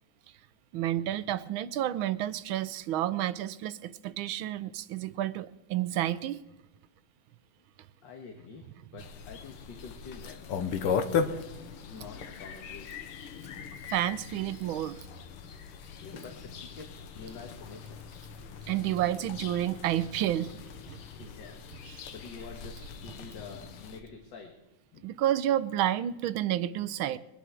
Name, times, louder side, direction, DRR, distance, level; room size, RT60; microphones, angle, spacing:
voice 1, 0.7-6.4 13.9-15.0 18.6-20.5 20.9-21.0 21.9-22.0 25.0-27.2, right 12 dB, 75° right, 16 dB, 1.4 m, -30 dB
voice 2, 8.0-11.4 11.8-12.9 16.0-18.0 20.9-24.6 24.9-25.0, left 4 dB, 60° left, 3 dB, 2.2 m, -47 dB
sound 1, 9.0-24.0, left 6 dB, 85° left, 2.0 m, -38 dB
23.0 x 11.0 x 4.7 m, 1.0 s
omnidirectional pair, 2.4 m